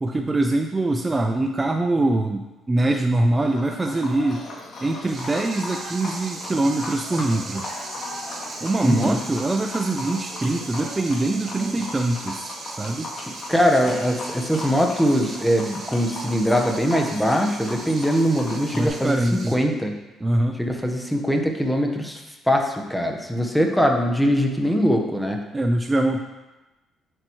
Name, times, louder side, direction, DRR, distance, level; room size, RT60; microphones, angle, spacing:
voice 1, 0.0-4.4 4.8-7.7 8.6-13.1 18.7-19.5 20.2-20.6 25.5-26.2, right 2 dB, 20° right, 4 dB, 0.5 m, -23 dB
Livestock farm animals working animals, 3.4-18.9, left 2 dB, 50° left, 2.4 m, -37 dB
sound 1, 5.1-19.5, right 3 dB, 45° right, 1.2 m, -38 dB
voice 2, 8.8-9.2 13.5-19.2 19.5-19.9 20.6-22.2 22.5-25.4, equal, ahead, 3 dB, 1.2 m, -21 dB
8.9 x 7.7 x 3.1 m, 1.1 s
cardioid pair, 85°, 0 cm